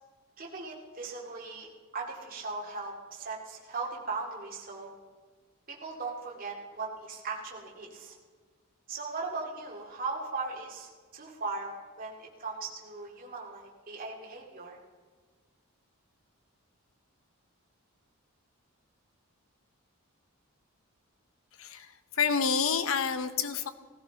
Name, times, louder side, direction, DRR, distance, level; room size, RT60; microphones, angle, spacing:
voice 1, 0.4-1.7 1.9-4.9 5.7-8.2 8.9-14.8, right 3 dB, 40° right, -2 dB, 2.2 m, -38 dB
voice 2, 21.6-23.7, left 6 dB, 60° left, 11 dB, 0.8 m, -29 dB
18.0 x 14.5 x 4.1 m, 1.5 s
head